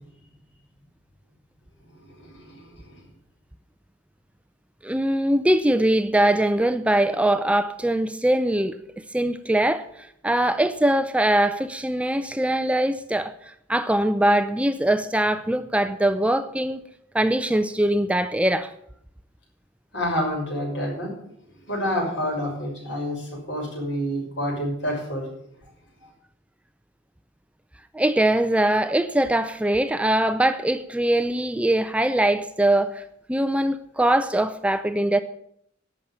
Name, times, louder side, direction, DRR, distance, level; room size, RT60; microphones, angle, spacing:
voice 1, 1.9-3.0 19.9-21.1 21.6-25.3 26.0-26.1, equal, 65° left, 6.0 m, -28 dB
voice 2, 4.8-16.8 17.1-18.7 27.9-35.2, right 1 dB, 5° right, 0.5 m, -22 dB
11.5 x 7.1 x 9.0 m
head